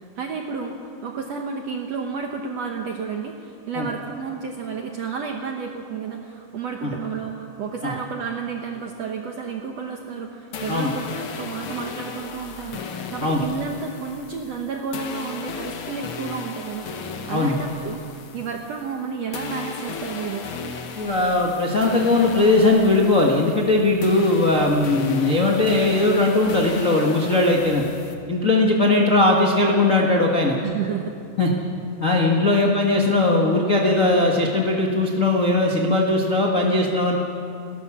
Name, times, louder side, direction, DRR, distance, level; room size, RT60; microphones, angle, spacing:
voice 1, 0.2-18.0 18.3-20.5 30.6-31.2 32.1-32.3 32.6-32.7, right 5 dB, 70° right, 2 dB, 1.6 m, -31 dB
sound 1, 10.5-19.0 19.3-28.1, left 5 dB, 70° left, 1.3 m, -35 dB
voice 2, 21.0-27.8 28.3-30.6 31.4-31.5 32.0-37.2, left 2 dB, 85° left, -1 dB, 0.7 m, -19 dB
30.0 x 12.0 x 7.4 m, 2.5 s
omnidirectional pair, 4.5 m